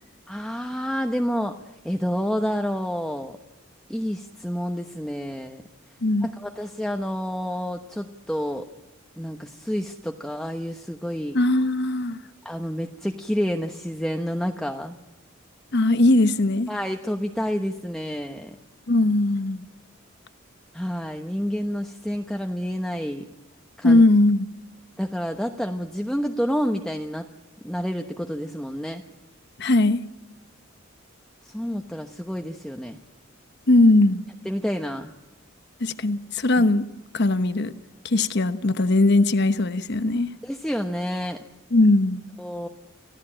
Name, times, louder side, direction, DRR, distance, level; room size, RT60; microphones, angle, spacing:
voice 1, 0.3-1.6 1.8-3.4 3.9-5.6 6.2-8.7 9.2-11.4 12.4-15.0 16.7-18.6 20.7-23.3 23.8-24.0 25.0-27.3 27.6-29.0 31.4-33.0 34.4-35.1 36.6-36.7 40.4-41.4 42.4-42.7, equal, 5° left, 1.0 m, -29 dB
voice 2, 11.3-12.2 15.7-16.7 18.9-19.6 23.8-24.5 29.6-30.0 33.7-34.2 35.8-36.9 37.1-37.7 38.0-40.3 41.7-42.2, left 2 dB, 55° left, 1.0 m, -19 dB
27.0 x 16.0 x 8.8 m
head